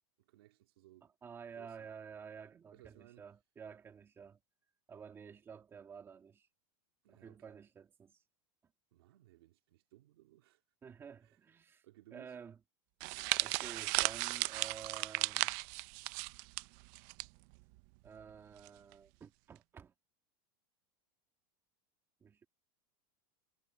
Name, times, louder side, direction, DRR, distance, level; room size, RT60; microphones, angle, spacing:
voice 1, 0.2-1.1 1.5-1.9 2.7-3.3 7.0-7.6 8.9-10.6 11.2-11.4 11.8-12.4, right 16 dB, 85° right, 2.3 m, -62 dB
voice 2, 1.2-4.4 4.9-6.5 7.1-8.2 10.8-11.8 12.1-12.6 13.4-15.6 18.0-19.9 22.2-22.5, right 6 dB, 20° right, 1.6 m, -51 dB
sound 1, 13.0-17.3 17.5-17.8 18.7-18.9, right 24 dB, 50° right, 0.5 m, -35 dB
supercardioid pair, 155°, 12 cm